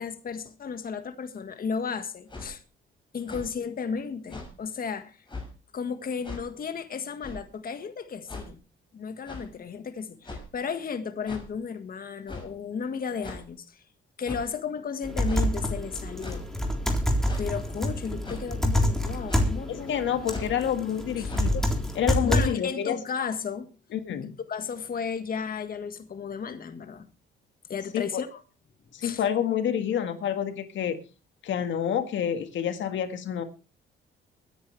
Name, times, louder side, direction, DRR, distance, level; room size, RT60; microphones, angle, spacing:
voice 1, 0.0-2.6 3.1-5.2 5.7-8.6 8.9-13.8 14.2-16.5 17.4-20.0 21.2-21.3 22.2-23.7 24.5-27.1 27.7-28.4 29.0-29.2, left 6 dB, 45° left, 1.7 m, -34 dB
sound 1, 2.3-2.5 3.2-3.5 4.3-4.5 5.3-5.5 6.2-6.4 7.2-7.5 8.3-8.5 9.2-9.5 10.2-10.6 11.2-11.5 12.3-12.5 13.2-13.4 14.2-14.5 15.2-15.5 16.2-16.4 17.3-17.5 18.2-18.5 19.3-19.5 20.2-20.6 21.3-21.4, left 2 dB, 25° left, 6.2 m, -39 dB
sound 2, 15.0-22.4, equal, ahead, 3.7 m, -27 dB
voice 2, 19.7-21.6 21.9-23.0 23.9-24.4 27.9-28.2 28.9-31.0 31.4-33.4, left 9 dB, 70° left, 1.8 m, -28 dB
23.0 x 10.5 x 3.3 m
cardioid pair, 90°, 20 cm